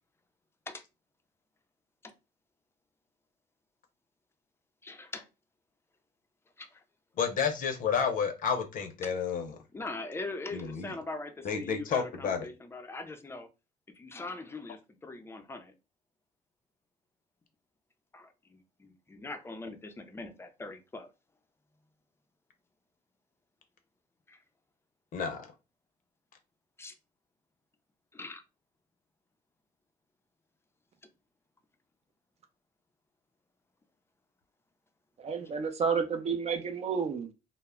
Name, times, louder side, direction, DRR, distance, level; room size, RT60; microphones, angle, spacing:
voice 1, 4.8-5.3 6.6-6.8 9.0-9.1 9.7-13.5 13.9-15.7 18.1-21.1 24.3-24.4 26.8-26.9 28.1-28.4, left 2 dB, 15° left, 0.4 m, -42 dB
voice 2, 7.2-9.5 10.5-10.9 11.4-12.5 25.1-25.5, left 6 dB, 55° left, 0.6 m, -30 dB
voice 3, 35.2-37.3, right 6 dB, 40° right, 0.5 m, -31 dB
2.1 x 2.0 x 3.5 m
cardioid pair, 110°, 17 cm